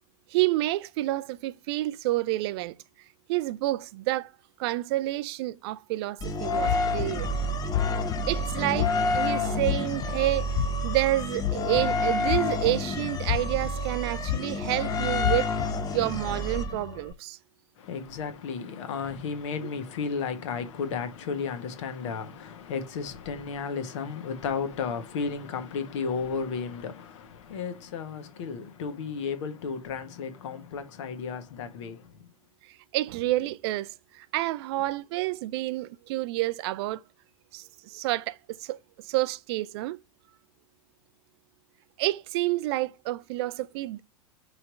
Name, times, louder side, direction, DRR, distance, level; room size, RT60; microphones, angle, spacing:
voice 1, 0.3-2.7 3.3-4.3 4.6-7.3 8.3-10.6 10.8-15.5 15.9-17.4 32.6-37.0 37.5-40.0 42.0-44.0, right 17 dB, 45° right, 0.5 m, -29 dB
sound 1, 6.2-17.1, left 2 dB, 20° left, 0.8 m, -29 dB
sound 2, 6.7-7.2 7.7-8.2 8.7-9.2 9.6-10.0 10.5-11.0 11.4-11.8 12.3-12.9 13.2-13.7 14.2-14.7 15.2-15.7, left 16 dB, 35° left, 0.4 m, -28 dB
voice 2, 17.8-32.3, left 5 dB, 55° left, 1.4 m, -33 dB
5.7 x 3.5 x 5.1 m
figure-of-eight pair, 90°, 18 cm